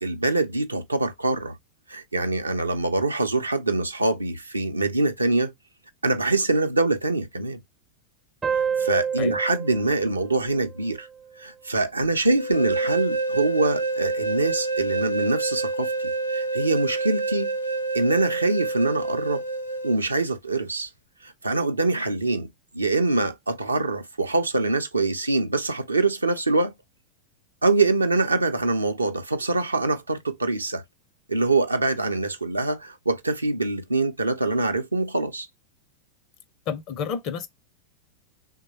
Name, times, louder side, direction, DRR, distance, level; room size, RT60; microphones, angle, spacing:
voice 1, 0.0-1.6 1.9-5.5 6.0-7.6 8.5-11.1 11.4-17.6 17.9-19.4 19.8-20.9 21.2-22.5 22.7-26.7 27.6-30.8 31.3-35.5, right 2 dB, 80° right, 0.5 m, -24 dB
sound 1, 8.4-11.6, right 7 dB, 20° right, 0.4 m, -30 dB
sound 2, 12.4-20.0, right 3 dB, 90° left, 0.5 m, -27 dB
voice 2, 36.7-37.5, left 7 dB, 40° left, 0.5 m, -30 dB
3.2 x 2.1 x 4.1 m
figure-of-eight pair, 90°, 0 cm